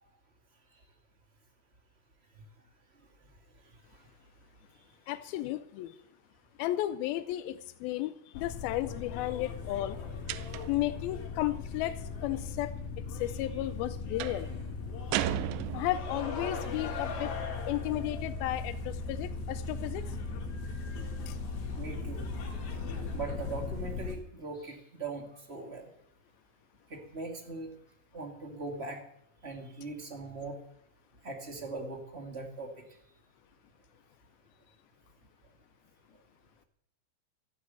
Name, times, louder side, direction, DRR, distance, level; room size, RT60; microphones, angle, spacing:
voice 1, 5.1-5.9 6.6-10.0 10.7-12.7 13.1-14.5 15.7-17.3 17.7-20.1 21.3-21.4, left 14 dB, 90° left, 12 dB, 2.1 m, -34 dB
sound 1, 8.3-24.1, left 4 dB, 60° left, 3.8 m, -38 dB
sound 2, 10.3-10.9 14.2-14.5 15.1-16.2, right 13 dB, 80° right, 2.8 m, -34 dB
voice 2, 21.7-22.3 23.1-25.9 26.9-27.7 28.1-29.0 29.4-30.5 31.2-32.7, right 3 dB, 30° right, 3 dB, 1.1 m, -40 dB
13.5 x 9.6 x 8.3 m, 0.72 s
omnidirectional pair, 5.1 m